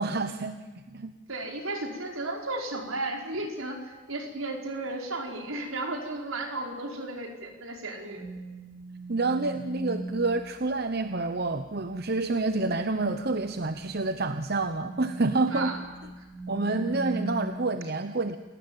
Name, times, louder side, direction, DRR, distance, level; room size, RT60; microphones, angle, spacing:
voice 1, 0.0-1.1 9.1-15.7 16.5-18.4, right 3 dB, 50° right, 9 dB, 1.0 m, -28 dB
voice 2, 1.3-8.3 15.5-15.8 16.2-16.3, right 2 dB, 75° right, 3 dB, 4.9 m, -34 dB
sound 1, 8.2-10.3 13.3-13.6 14.5-17.4, right 3 dB, 10° left, 5.0 m, -39 dB
28.0 x 18.5 x 9.2 m, 1.2 s
head